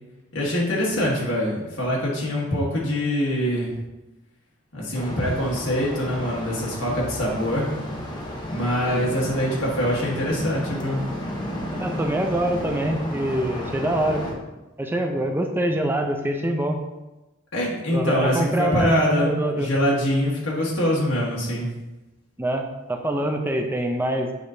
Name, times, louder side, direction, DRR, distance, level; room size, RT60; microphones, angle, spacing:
voice 1, 0.3-3.8 4.7-7.7 8.5-11.0 17.5-21.7, equal, 70° left, -4 dB, 1.5 m, -24 dB
sound 1, 4.9-14.3, left 1 dB, 25° left, 1.0 m, -32 dB
voice 2, 6.9-7.3 8.9-9.1 11.8-14.4 14.8-16.8 17.9-19.7 22.4-24.3, right 1 dB, 10° right, 3 dB, 0.5 m, -25 dB
7.8 x 5.0 x 2.7 m, 1.0 s
head